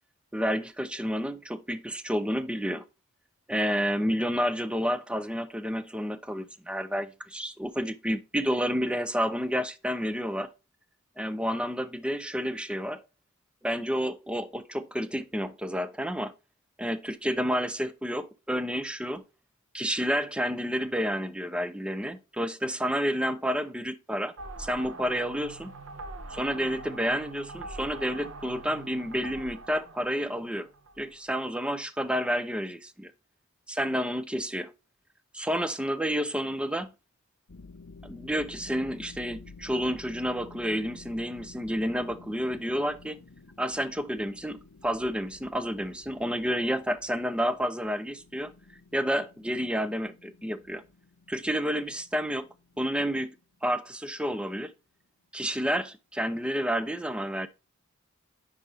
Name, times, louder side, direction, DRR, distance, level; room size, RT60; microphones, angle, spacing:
voice 1, 0.3-2.8 3.5-10.5 11.2-13.0 13.6-16.3 16.8-19.2 19.7-24.3 24.6-25.7 26.3-30.7 31.0-33.1 33.7-34.7 35.3-36.9 38.0-43.2 43.6-48.5 48.9-50.8 51.3-52.5 52.8-53.4 53.6-54.7 55.3-57.5, equal, 5° right, 0.5 m, -30 dB
sound 1, 24.4-31.1, right 2 dB, 70° right, 1.0 m, -43 dB
sound 2, 37.5-54.1, left 3 dB, 60° left, 0.7 m, -51 dB
10.0 x 4.0 x 3.3 m
head